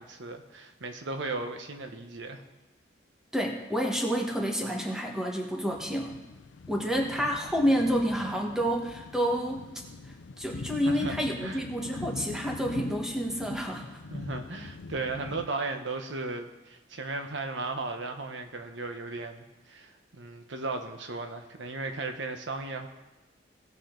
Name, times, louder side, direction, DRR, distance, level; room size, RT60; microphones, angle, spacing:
voice 1, 0.0-2.4 10.8-11.1 11.4-11.6 14.1-22.9, right 3 dB, 80° right, 6 dB, 1.1 m, -36 dB
voice 2, 3.3-6.1 6.7-9.7 10.4-13.9, equal, 5° right, 0 dB, 1.4 m, -29 dB
sound 1, 5.7-15.5, left 3 dB, 85° left, 0.5 m, -43 dB
18.0 x 6.8 x 3.9 m, 1.1 s
head